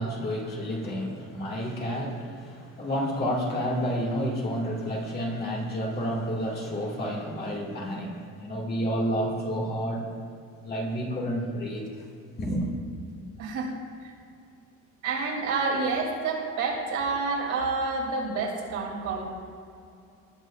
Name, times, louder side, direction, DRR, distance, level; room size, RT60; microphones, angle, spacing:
voice 1, 0.0-10.1 10.6-11.9 12.4-12.7, equal, 30° left, -3 dB, 2.2 m, -30 dB
voice 2, 13.4-13.7 15.0-19.2, right 4 dB, 70° right, -2 dB, 3.0 m, -28 dB
20.0 x 11.0 x 2.5 m, 2.5 s
cardioid pair, 165°, 32 cm